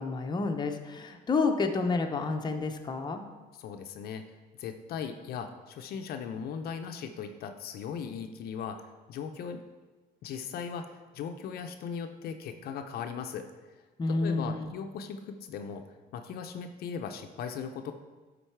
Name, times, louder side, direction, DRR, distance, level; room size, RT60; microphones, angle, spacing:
voice 1, 0.0-3.2 14.0-14.7, left 3 dB, 25° left, 4 dB, 0.7 m, -29 dB
voice 2, 3.6-9.6 10.2-13.5 14.1-15.8 16.1-17.9, left 6 dB, 65° left, 6 dB, 0.6 m, -38 dB
10.0 x 4.0 x 4.6 m, 1.3 s
cardioid pair, 110°, 17 cm